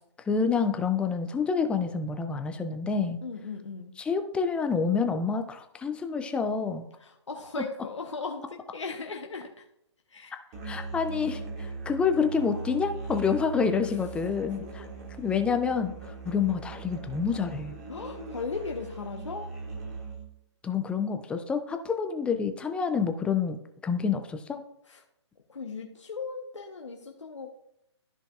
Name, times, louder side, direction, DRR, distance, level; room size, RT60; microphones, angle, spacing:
voice 1, 0.3-3.2 4.0-6.8 10.6-14.8 15.2-15.9 16.2-17.8 20.6-23.6 23.8-24.6, left 5 dB, 5° left, 7 dB, 0.5 m, -28 dB
voice 2, 3.2-3.9 7.0-9.6 10.1-10.4 17.9-19.5 24.9-25.0 25.5-27.5, left 4 dB, 90° left, 1 dB, 1.1 m, -37 dB
Musical instrument, 10.5-20.3, right 3 dB, 35° right, 2.3 m, -40 dB
13.5 x 5.1 x 2.5 m, 0.78 s
hypercardioid pair, 140°, 15 cm